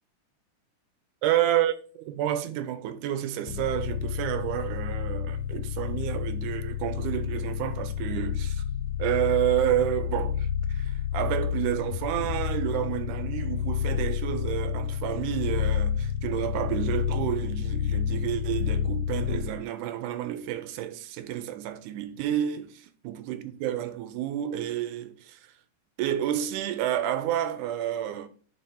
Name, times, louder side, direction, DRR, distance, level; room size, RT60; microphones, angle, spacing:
voice 1, 1.2-8.6 9.0-25.4 26.0-28.3, right 12 dB, 85° right, 2.1 m, -30 dB
sound 1, 3.5-19.6, left 9 dB, 85° left, 2.1 m, -30 dB
5.4 x 4.4 x 5.7 m
omnidirectional pair, 3.6 m